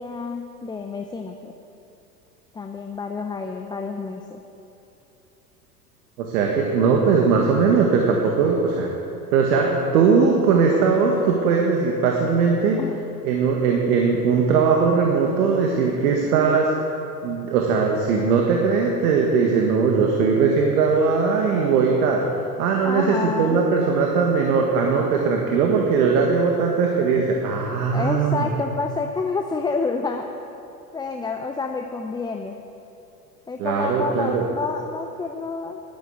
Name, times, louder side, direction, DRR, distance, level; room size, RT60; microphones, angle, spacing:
voice 1, 0.0-1.5 2.5-4.4 12.8-13.0 22.8-23.6 27.9-30.3 30.9-32.6 33.5-35.8, left 4 dB, 10° left, 4 dB, 0.6 m, -29 dB
voice 2, 6.2-8.9 9.3-12.8 13.2-16.7 17.2-22.2 22.6-28.5 33.6-34.4, right 5 dB, 65° right, 1 dB, 1.8 m, -20 dB
11.5 x 10.0 x 8.3 m, 2.9 s
hypercardioid pair, 90°, 48 cm